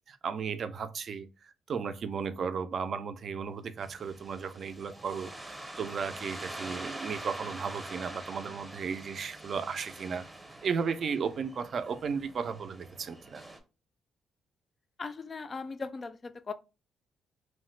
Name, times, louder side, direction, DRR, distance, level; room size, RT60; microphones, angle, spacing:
voice 1, 0.1-10.3 10.6-13.4, right 6 dB, 55° right, 0.4 m, -35 dB
sound 1, 3.8-13.6, right 1 dB, 15° right, 0.7 m, -45 dB
voice 2, 15.0-16.5, left 4 dB, 35° left, 0.3 m, -38 dB
3.0 x 2.0 x 3.1 m
cardioid pair, 90°, 0 cm